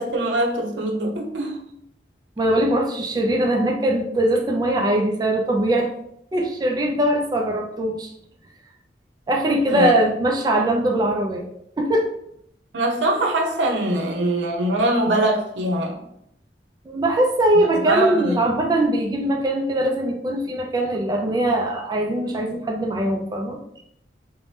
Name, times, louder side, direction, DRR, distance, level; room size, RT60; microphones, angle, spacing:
voice 1, 0.0-1.6 9.7-9.9 12.7-16.0 17.8-18.4, right 1 dB, 90° right, 2 dB, 0.5 m, -22 dB
voice 2, 2.4-5.9 6.3-8.1 9.3-11.4 11.8-12.1 16.9-23.6, right 1 dB, 25° right, 1 dB, 0.3 m, -21 dB
2.7 x 2.1 x 3.2 m, 0.74 s
head